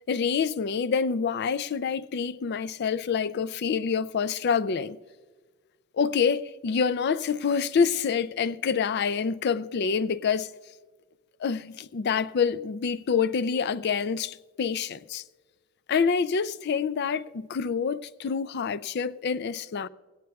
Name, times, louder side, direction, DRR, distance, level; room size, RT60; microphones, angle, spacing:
voice 1, 0.1-5.0 6.0-10.5 11.4-15.2 15.9-19.9, left 6 dB, 50° left, 0.4 m, -27 dB
18.0 x 17.0 x 2.3 m
head